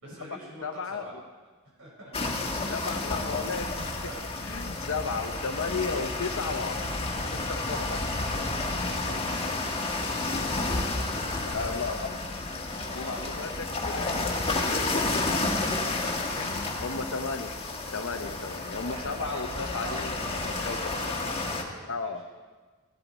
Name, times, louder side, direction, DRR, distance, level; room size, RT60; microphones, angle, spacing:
voice 1, 0.0-1.2 1.8-2.5 4.1-4.2 4.6-4.9 8.9-9.5 12.8-13.4 15.9-16.6 18.9-22.1, right 1 dB, 70° right, -3 dB, 4.7 m, -44 dB
voice 2, 0.6-1.2 2.7-4.1 4.4-6.8 7.3-8.0 11.5-12.2 13.0-14.2 14.6-15.8 16.4-17.5 17.9-20.1 20.4-21.1 21.9-22.3, left 4 dB, 65° left, 6 dB, 0.8 m, -34 dB
sound 1, 2.1-21.6, left 2 dB, 25° left, 1.4 m, -31 dB
15.0 x 12.0 x 4.2 m, 1.4 s
head